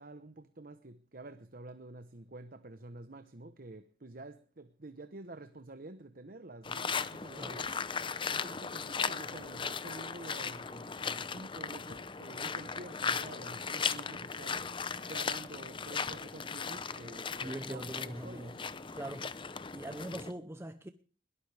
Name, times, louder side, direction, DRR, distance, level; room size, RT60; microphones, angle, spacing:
voice 1, 0.0-7.7 8.3-14.8 15.1-18.6, right 2 dB, 50° right, 1.0 m, -49 dB
sound 1, 6.6-20.3, left 5 dB, 30° left, 0.7 m, -37 dB
voice 2, 17.4-18.6 18.9-19.3 19.7-20.9, right 1 dB, 15° right, 0.8 m, -42 dB
21.5 x 18.5 x 3.5 m
head